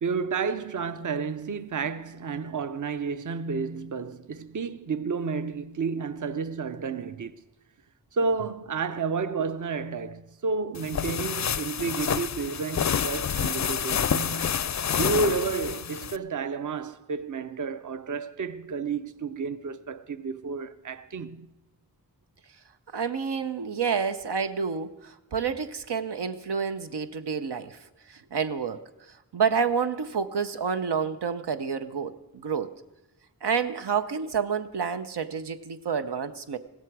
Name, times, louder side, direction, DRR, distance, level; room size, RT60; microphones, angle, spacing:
voice 1, 0.0-7.4 8.1-14.6 14.9-21.5, right 4 dB, 50° right, 0.6 m, -31 dB
sound 1, 10.7-16.2, left 8 dB, 45° left, 0.4 m, -28 dB
voice 2, 22.9-27.8 28.1-28.8 29.3-32.7 33.4-36.6, right 6 dB, 90° right, 0.7 m, -29 dB
16.0 x 13.5 x 4.7 m
wide cardioid pair, 45°, 39 cm